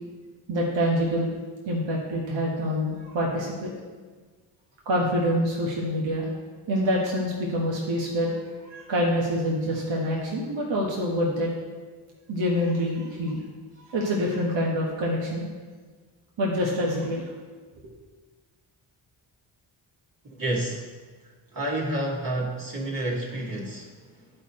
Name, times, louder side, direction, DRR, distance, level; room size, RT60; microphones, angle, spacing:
voice 1, 0.5-1.3 1.6-3.7 4.8-6.3 6.7-11.5 12.3-13.4 13.9-15.5 16.4-17.2, equal, 60° right, -3 dB, 1.4 m, -26 dB
voice 2, 20.2-20.9 21.2-24.4, right 1 dB, 40° right, -5 dB, 2.0 m, -30 dB
9.6 x 4.5 x 4.3 m, 1.4 s
supercardioid pair, 45°, 50 cm